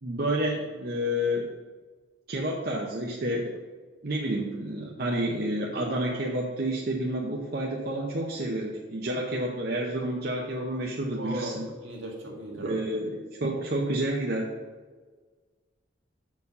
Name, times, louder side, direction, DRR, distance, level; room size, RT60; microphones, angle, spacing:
voice 1, 0.0-1.5 2.3-3.6 4.0-11.7 12.5-14.6, right 1 dB, 50° right, -1 dB, 0.7 m, -29 dB
voice 2, 11.2-11.6 11.8-12.8, right 1 dB, 75° right, -1 dB, 1.8 m, -37 dB
6.9 x 4.7 x 5.3 m, 1.4 s
head